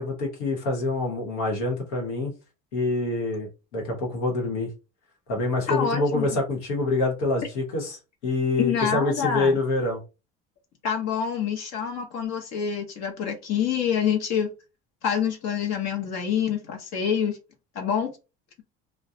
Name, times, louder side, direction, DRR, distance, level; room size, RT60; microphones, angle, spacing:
voice 1, 0.0-2.3 2.7-4.7 5.3-8.0 8.2-10.0, left 2 dB, 90° left, 1.0 m, -26 dB
voice 2, 5.7-6.4 8.6-9.6 10.8-14.5 15.0-17.4 17.7-18.1, left 7 dB, 55° left, 0.8 m, -26 dB
2.3 x 2.1 x 2.7 m
hypercardioid pair, 70°, 32 cm